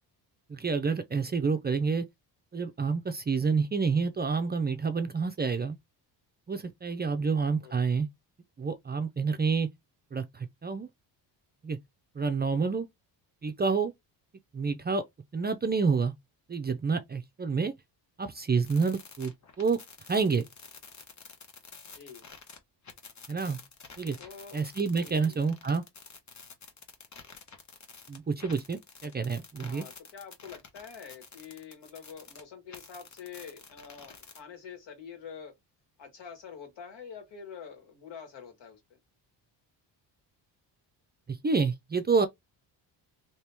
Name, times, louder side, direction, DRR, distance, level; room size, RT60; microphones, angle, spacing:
voice 1, 0.5-2.1 2.5-5.8 6.5-8.1 8.6-9.7 10.1-10.9 11.6-11.8 12.2-12.9 13.4-13.9 14.5-15.0 15.3-16.1 16.5-17.7 18.2-19.3 19.6-19.8 20.1-20.5 23.3-23.6 24.0-24.2 24.5-25.8 28.1-29.8 41.4-42.3, right 5 dB, 25° right, 0.4 m, -28 dB
voice 2, 7.2-7.8 21.8-22.3 24.2-24.7 25.0-25.4 29.6-35.5 36.0-39.0, left 7 dB, 75° left, 1.8 m, -46 dB
sound 1, 18.7-22.6 22.8-32.4 32.7-34.4, left 5 dB, 40° left, 1.1 m, -49 dB
2.9 x 2.9 x 3.4 m
cardioid pair, 95°, 44 cm